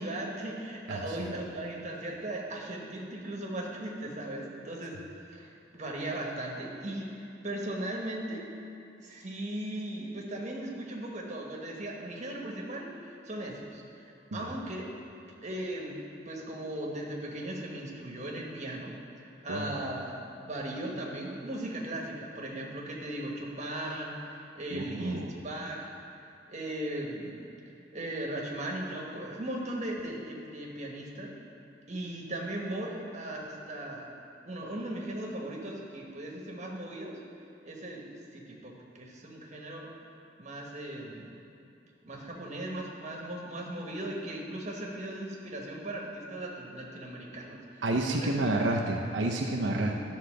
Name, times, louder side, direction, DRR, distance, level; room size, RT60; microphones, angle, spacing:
voice 1, 0.0-4.9 5.3-8.4 9.0-13.8 14.3-14.9 15.4-15.9 16.2-18.9 19.4-25.9 26.5-27.5 27.9-31.3 31.9-34.1 34.4-37.2 37.6-38.0 38.3-39.9 40.4-41.3 42.0-48.7, right 1 dB, 40° right, -2 dB, 1.3 m, -38 dB
voice 2, 0.9-1.3 14.3-14.4 19.5-19.8 24.7-25.3 47.8-50.0, right 2 dB, 80° right, 0 dB, 0.7 m, -30 dB
11.5 x 4.0 x 6.4 m, 2.7 s
head